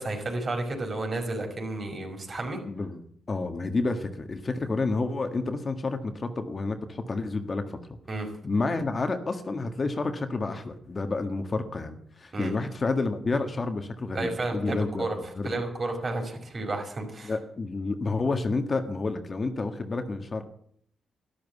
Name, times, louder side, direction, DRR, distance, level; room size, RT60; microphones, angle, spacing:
voice 1, 0.0-2.6 8.1-8.3 12.3-12.5 14.1-15.2 15.4-17.3, right 2 dB, 40° right, 3 dB, 5.3 m, -31 dB
voice 2, 2.7-3.0 3.3-7.8 8.4-15.1 15.4-15.5 17.2-20.4, left 3 dB, 35° left, 6 dB, 1.7 m, -29 dB
12.5 x 12.0 x 8.3 m, 0.64 s
cardioid pair, 90°, 0 cm